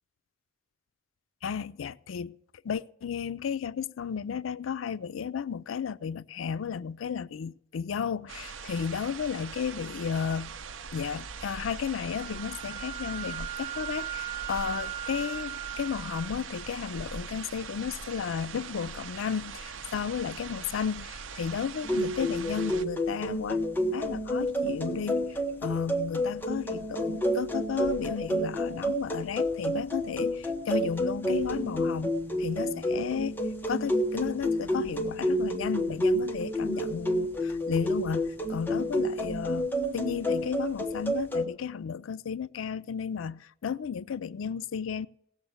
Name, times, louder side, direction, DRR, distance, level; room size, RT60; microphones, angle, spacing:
voice 1, 1.4-2.3 2.6-10.5 10.9-23.6 23.9-32.1 32.4-33.4 33.7-45.1, left 7 dB, 85° left, 0.4 m, -33 dB
sound 1, 8.3-22.8, right 6 dB, 80° right, 0.6 m, -42 dB
Wind instrument woodwind instrument, 12.1-16.3, right 11 dB, 30° right, 1.6 m, -38 dB
sound 2, 21.8-41.4, equal, 10° left, 1.1 m, -30 dB
17.5 x 6.9 x 8.0 m
head